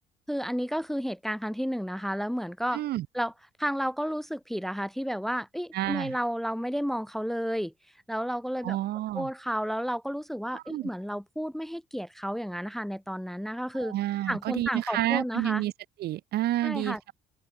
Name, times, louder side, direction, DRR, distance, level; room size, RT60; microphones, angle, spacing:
voice 1, 0.3-2.8 3.1-3.3 3.6-7.7 8.1-8.8 9.1-13.9 14.3-15.6 16.6-17.0, equal, ahead, 0.9 m, -31 dB
voice 2, 2.7-3.1 5.7-6.2 8.6-9.3 10.5-10.9 13.7-15.7 16.0-17.1, right 14 dB, 70° right, 2.0 m, -29 dB
open air
cardioid pair, 110°, 17 cm